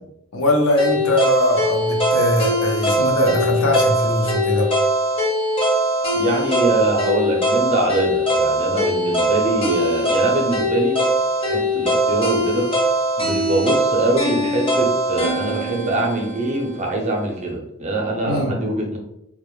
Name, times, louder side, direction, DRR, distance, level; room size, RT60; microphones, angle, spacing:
voice 1, 0.3-4.7 18.2-18.6, left 1 dB, 75° left, 0 dB, 0.6 m, -20 dB
sound 1, 0.8-16.9, equal, 25° left, 0.6 m, -21 dB
voice 2, 6.1-11.0 11.4-12.7 13.2-19.0, right 2 dB, 35° right, 0 dB, 0.5 m, -23 dB
2.2 x 2.0 x 3.0 m, 0.80 s
head